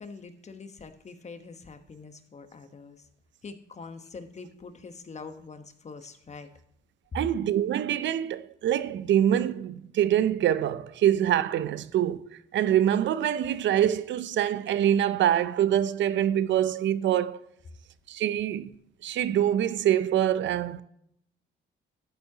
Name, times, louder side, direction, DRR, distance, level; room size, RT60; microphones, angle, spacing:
voice 1, 0.0-3.0 3.4-6.5, left 4 dB, 35° left, 1.2 m, -44 dB
voice 2, 7.1-12.2 12.5-17.4 18.1-18.7 19.0-20.8, right 11 dB, 70° right, 0.6 m, -25 dB
12.5 x 8.6 x 2.9 m
cardioid pair, 90°, 20 cm